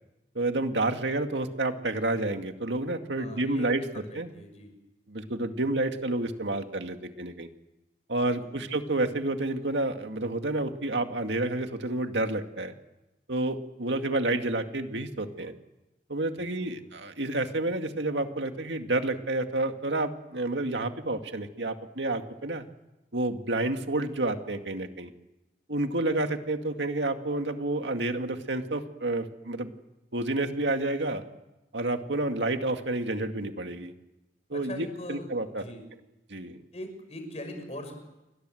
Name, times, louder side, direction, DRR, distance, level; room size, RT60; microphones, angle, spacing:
voice 1, 0.4-3.8 4.2-4.3 5.1-7.5 8.1-12.7 13.3-15.5 16.1-22.6 23.1-25.1 25.7-29.7 30.1-31.2 31.7-33.9 34.5-35.6 36.3-36.6, right 2 dB, 90° right, 6 dB, 2.2 m, -29 dB
voice 2, 3.2-4.7 8.2-8.6 16.4-16.9 34.5-35.9 36.7-38.0, left 1 dB, 35° left, 6 dB, 6.0 m, -42 dB
29.0 x 24.0 x 7.9 m, 1.0 s
head